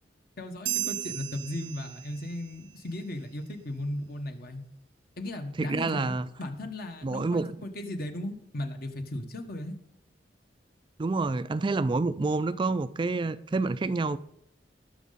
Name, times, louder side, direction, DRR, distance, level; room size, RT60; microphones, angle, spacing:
voice 1, 0.4-4.6 5.2-6.1 6.4-9.7, left 1 dB, 60° left, 1.4 m, -36 dB
sound 1, 0.7-2.5, right 14 dB, 85° right, 0.5 m, -35 dB
voice 2, 5.6-6.3 7.0-7.5 11.0-14.2, right 3 dB, 30° right, 0.4 m, -28 dB
19.0 x 6.5 x 4.1 m
head